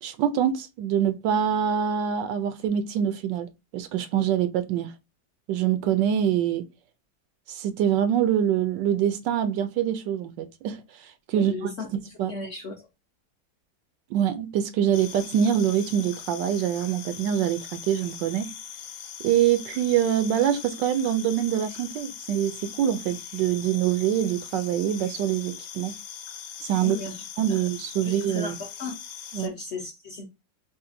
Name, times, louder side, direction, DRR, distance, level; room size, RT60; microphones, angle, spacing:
voice 1, 0.0-4.9 5.5-6.6 7.5-12.4 14.1-18.5 19.2-25.9 26.6-27.0 27.4-28.6 29.3-29.5, right 10 dB, 75° right, 1.3 m, -25 dB
voice 2, 11.4-11.9 12.3-12.7 26.8-27.1 28.0-29.0 29.4-30.3, left 3 dB, 45° left, 1.0 m, -35 dB
sound 1, 14.9-29.5, left 9 dB, 75° left, 1.4 m, -41 dB
4.2 x 2.2 x 3.7 m
omnidirectional pair, 2.0 m